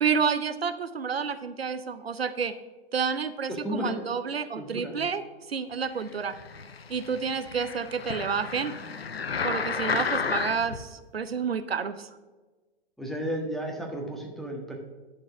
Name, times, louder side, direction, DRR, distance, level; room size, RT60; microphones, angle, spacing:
voice 1, 0.0-2.5 2.9-5.2 5.5-6.3 6.9-8.7 9.4-12.1, right 6 dB, 85° right, 12 dB, 0.6 m, -29 dB
voice 2, 3.5-4.0 4.5-5.0 13.0-14.8, equal, ahead, 0 dB, 1.5 m, -33 dB
sound 1, 6.2-10.8 11.4-11.5, left 5 dB, 85° left, 0.6 m, -32 dB
10.5 x 4.6 x 6.0 m, 1.3 s
figure-of-eight pair, 100°, 30 cm